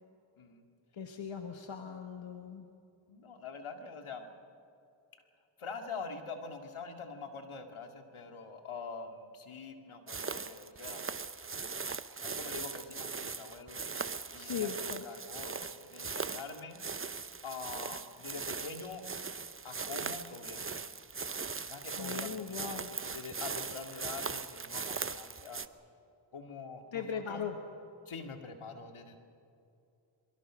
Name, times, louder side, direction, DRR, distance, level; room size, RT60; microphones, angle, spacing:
voice 1, 0.9-2.7 14.4-15.1 22.0-22.9 26.9-27.6, left 7 dB, 65° left, 5 dB, 1.5 m, -39 dB
voice 2, 3.1-4.3 5.6-11.1 12.2-16.8 17.4-19.0 19.6-20.9 21.7-25.6 26.3-27.4 28.1-29.2, left 4 dB, 80° left, 5 dB, 2.2 m, -45 dB
sound 1, 10.1-25.7, right 5 dB, 25° right, 0.8 m, -40 dB
24.5 x 23.5 x 6.3 m, 2.6 s
cardioid pair, 60°, 48 cm